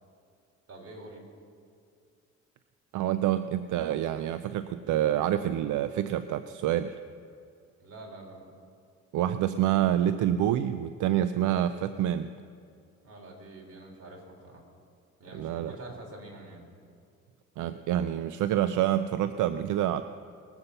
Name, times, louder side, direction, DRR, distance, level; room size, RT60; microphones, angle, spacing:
voice 1, 0.7-1.2 7.8-8.5 13.0-14.6 15.2-16.6, right 2 dB, 50° right, 0 dB, 3.7 m, -46 dB
voice 2, 2.9-7.0 9.1-12.3 15.3-15.7 17.6-20.0, right 11 dB, 80° right, 11 dB, 0.5 m, -27 dB
20.0 x 8.0 x 5.5 m, 2.4 s
cardioid pair, 90°, 30 cm